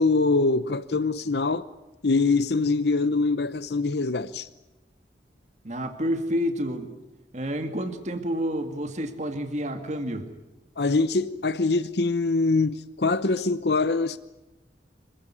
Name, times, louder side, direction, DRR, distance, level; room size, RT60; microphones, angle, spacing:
voice 1, 0.0-1.6 2.0-4.5 10.8-14.2, left 3 dB, 70° left, 0.8 m, -23 dB
voice 2, 5.6-6.9 7.3-10.3, equal, 40° right, 2.2 m, -29 dB
26.5 x 16.5 x 9.8 m
head